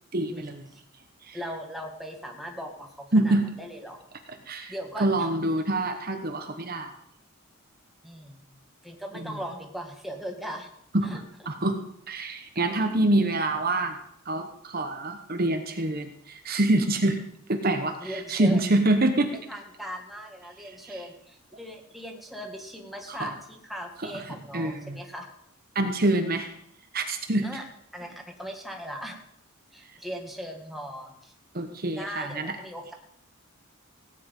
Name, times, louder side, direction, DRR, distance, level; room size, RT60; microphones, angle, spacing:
voice 1, 0.1-0.7 1.2-1.4 3.1-3.5 4.3-6.9 9.1-9.4 10.9-11.8 12.1-14.0 14.2-17.2 17.5-19.4 20.6-20.9 23.1-23.3 24.0-25.0 25.7-26.5 26.9-27.5 31.5-32.6, right 2 dB, 45° right, 6 dB, 1.1 m, -26 dB
voice 2, 1.3-4.0 4.7-5.3 8.0-8.5 8.8-10.7 11.0-11.2 18.0-18.6 19.5-25.2 27.4-27.6 27.9-29.2 29.7-31.3 31.9-32.9, equal, ahead, 1 dB, 1.9 m, -39 dB
17.0 x 9.8 x 5.5 m, 0.72 s
head